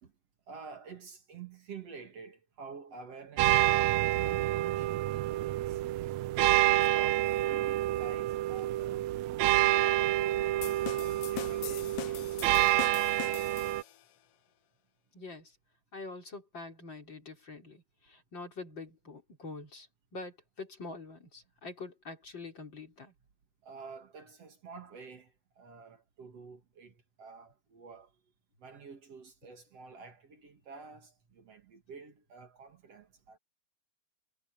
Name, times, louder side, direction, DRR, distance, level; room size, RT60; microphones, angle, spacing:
voice 1, 0.5-5.1 5.4-5.8 6.5-9.2 9.8-10.7 11.2-12.8 13.2-13.7 23.6-28.1 28.6-33.4, right 5 dB, 55° right, 2.9 m, -49 dB
sound 1, 3.4-13.8, right 15 dB, 80° right, 1.8 m, -28 dB
sound 2, 10.6-14.0, left 13 dB, 70° left, 1.6 m, -42 dB
voice 2, 15.1-15.6 15.9-19.9 20.1-23.1, left 3 dB, 35° left, 4.5 m, -45 dB
omnidirectional pair, 3.5 m